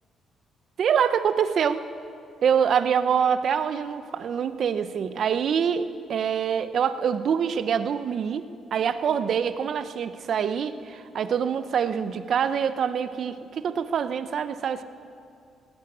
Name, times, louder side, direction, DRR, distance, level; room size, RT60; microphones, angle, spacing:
voice 1, 0.8-1.8 2.4-8.4 8.7-14.8, right 7 dB, 60° right, 12 dB, 0.7 m, -25 dB
17.5 x 8.9 x 8.6 m, 2.5 s
cardioid pair, 90°, 0 cm